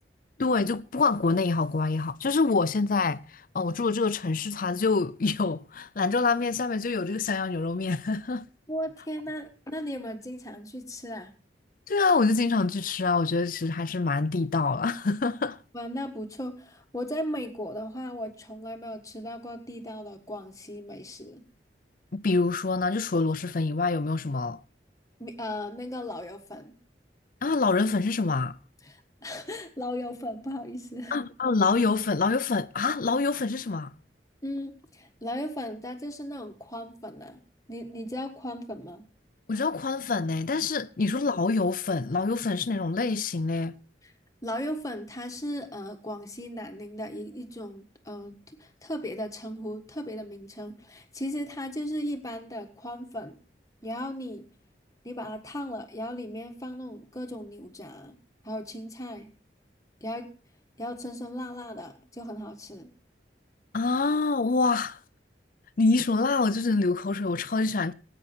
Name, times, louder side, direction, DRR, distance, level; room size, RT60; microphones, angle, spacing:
voice 1, 0.4-3.2 3.5-8.4 11.9-15.6 22.1-24.6 27.4-28.6 31.1-33.9 39.5-43.7 63.7-65.0 65.8-67.9, left 3 dB, 50° left, 0.5 m, -26 dB
voice 2, 8.7-11.3 15.7-21.4 25.2-26.7 28.8-31.2 34.4-37.4 37.7-39.1 44.0-44.1 44.4-48.3 48.6-53.4 53.8-54.4 55.0-58.2 58.4-59.3 60.0-60.3 60.8-62.9, equal, 20° left, 1.5 m, -36 dB
19.0 x 9.0 x 4.4 m
head